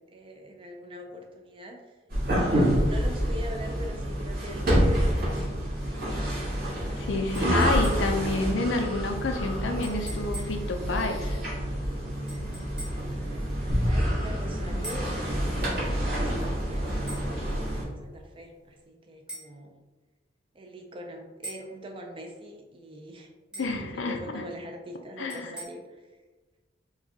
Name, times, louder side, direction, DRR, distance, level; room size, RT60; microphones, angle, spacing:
voice 1, 0.0-2.0 2.2-5.5 12.9-16.9 17.5-19.7 20.5-26.1, equal, 30° right, 2 dB, 0.4 m, -43 dB
sound 1, 2.1-17.8, equal, 50° right, 1.4 m, -28 dB
voice 2, 7.1-11.4 23.6-24.4 25.2-25.5, left 2 dB, 70° left, 4 dB, 0.5 m, -29 dB
sound 2, 7.3-8.3 9.8-10.7 12.3-13.1 14.8-15.2 17.1-17.3 19.3-19.5 21.4-21.7 23.5-23.8 25.3-25.6, right 1 dB, 5° right, 0.9 m, -42 dB
sound 3, 13.7-16.2, equal, 75° right, 0.9 m, -30 dB
4.7 x 2.2 x 2.8 m, 1.3 s
head